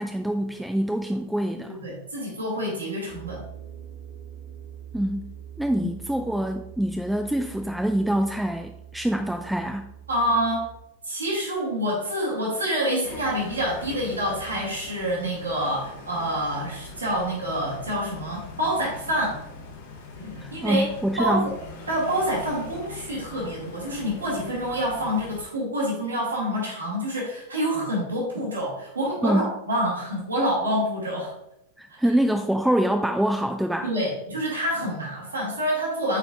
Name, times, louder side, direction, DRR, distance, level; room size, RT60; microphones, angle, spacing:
voice 1, 0.0-1.8 4.9-5.3 5.6-9.9 20.4-21.5 29.2-29.5 31.8-33.9, right 1 dB, ahead, 5 dB, 0.4 m, -25 dB
voice 2, 1.7-3.4 5.8-5.9 10.1-10.6 11.0-19.4 20.2-20.8 21.2-21.5 21.9-31.3 33.8-36.2, equal, 75° right, -4 dB, 2.2 m, -27 dB
sound 1, 3.1-10.8, right 9 dB, 30° right, 1.0 m, -43 dB
sound 2, 13.0-25.4, left 4 dB, 55° left, 1.1 m, -42 dB
8.2 x 4.5 x 2.5 m, 0.83 s
figure-of-eight pair, 90°, 0 cm